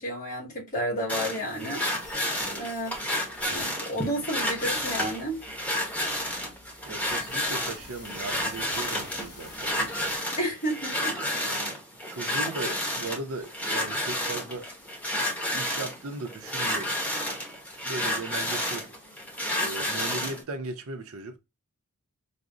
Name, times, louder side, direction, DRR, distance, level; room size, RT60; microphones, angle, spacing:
voice 1, 0.0-1.8 2.6-2.9 3.5-5.4 10.4-11.2, equal, 40° left, 1.9 m, -31 dB
sound 1, 1.1-20.4, left 1 dB, 5° left, 0.8 m, -31 dB
sound 2, 1.8-10.2, left 2 dB, 70° left, 1.8 m, -49 dB
voice 2, 6.9-9.7 11.0-14.7 15.5-16.9 17.8-18.9 19.5-21.4, right 3 dB, 65° right, 0.6 m, -38 dB
4.9 x 2.0 x 2.4 m
head